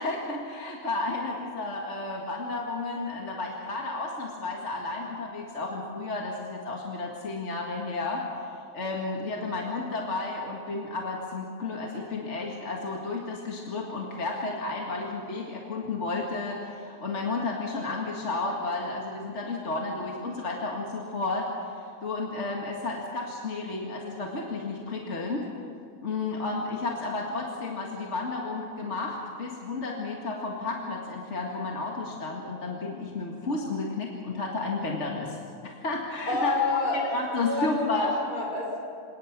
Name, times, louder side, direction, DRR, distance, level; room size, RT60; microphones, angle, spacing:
voice 1, 0.0-8.3 8.7-21.5 22.0-25.5 26.0-35.4 35.6-36.5 36.9-38.2, left 3 dB, 45° left, -1 dB, 2.2 m, -32 dB
voice 2, 36.3-37.1 37.4-38.8, left 3 dB, 75° left, -2 dB, 6.5 m, -28 dB
27.5 x 18.5 x 6.1 m, 2.4 s
omnidirectional pair, 1.6 m